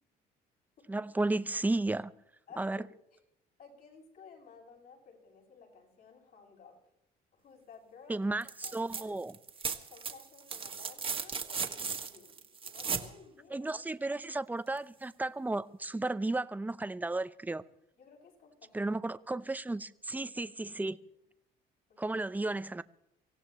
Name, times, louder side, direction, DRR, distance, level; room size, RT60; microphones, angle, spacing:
voice 1, 0.9-2.1 2.6-2.8 8.1-9.3 13.5-17.6 18.7-21.0 22.0-22.8, right 2 dB, 10° right, 0.7 m, -33 dB
voice 2, 2.5-3.2 3.6-6.8 7.3-8.2 8.6-9.2 9.9-13.7 18.0-18.9 19.3-19.8 20.2-20.7 21.9-22.1, left 5 dB, 60° left, 7.9 m, -56 dB
sound 1, 8.4-9.0 9.3-13.1 14.8-14.9, right 5 dB, 35° right, 1.7 m, -36 dB
24.5 x 17.0 x 3.2 m
cardioid pair, 110°, 17 cm